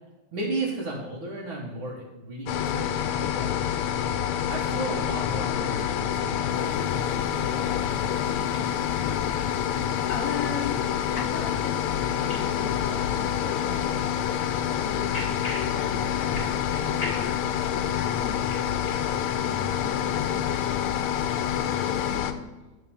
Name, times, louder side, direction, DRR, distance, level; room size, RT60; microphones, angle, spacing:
voice 1, 0.3-3.5 4.5-7.1 7.4-7.9 13.4-13.5, right 2 dB, 75° right, -5 dB, 2.1 m, -35 dB
sound 1, 2.5-22.3, left 9 dB, 90° left, 1.5 m, -27 dB
sound 2, 6.5-22.2, left 1 dB, 15° left, 1.9 m, -45 dB
voice 2, 10.1-15.0 15.7-18.6 19.3-22.5, left 5 dB, 60° left, 3 dB, 0.9 m, -40 dB
9.4 x 4.1 x 6.9 m, 1.1 s
omnidirectional pair, 2.3 m